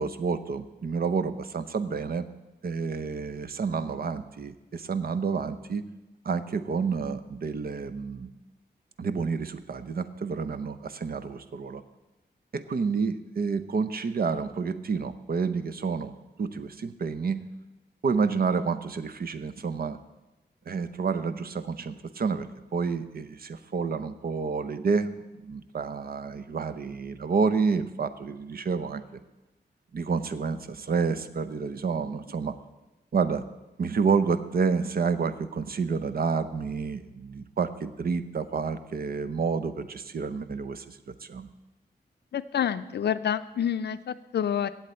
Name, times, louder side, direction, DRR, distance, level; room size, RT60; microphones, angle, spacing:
voice 1, 0.0-2.3 2.6-5.8 6.2-8.3 9.0-11.8 12.5-16.1 16.4-17.4 18.0-20.0 20.7-29.0 29.9-32.6 33.1-33.5 33.8-41.5, right 5 dB, 60° right, 12 dB, 0.7 m, -29 dB
voice 2, 42.3-44.7, left 9 dB, 75° left, 13 dB, 0.5 m, -28 dB
16.0 x 8.1 x 4.3 m, 1.0 s
wide cardioid pair, 90°, 17 cm